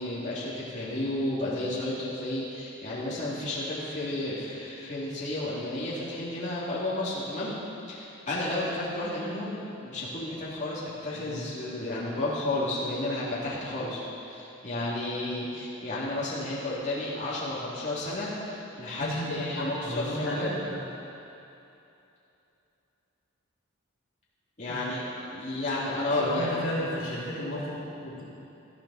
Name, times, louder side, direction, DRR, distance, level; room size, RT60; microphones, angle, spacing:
voice 1, 0.0-7.5 7.9-14.0 14.2-20.6 24.6-26.6, left 1 dB, 35° left, -9 dB, 3.1 m, -32 dB
voice 2, 11.1-11.4 19.0-20.9 24.6-24.9 26.2-28.2, equal, 65° left, -6 dB, 3.2 m, -33 dB
19.0 x 12.5 x 4.4 m, 2.8 s
head